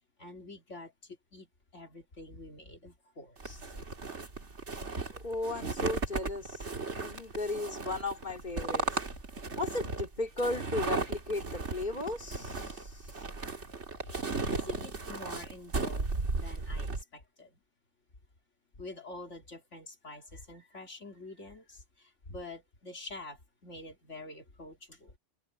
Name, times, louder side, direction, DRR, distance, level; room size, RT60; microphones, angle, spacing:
voice 1, 0.2-1.5 1.7-3.7 14.0-17.6 18.8-25.1, left 2 dB, 65° left, 3.2 m, -47 dB
sound 1, 3.4-17.0, right 3 dB, 60° right, 2.6 m, -35 dB
voice 2, 5.2-8.9 9.6-13.2, left 2 dB, 35° left, 3.1 m, -36 dB
open air
omnidirectional pair, 1.3 m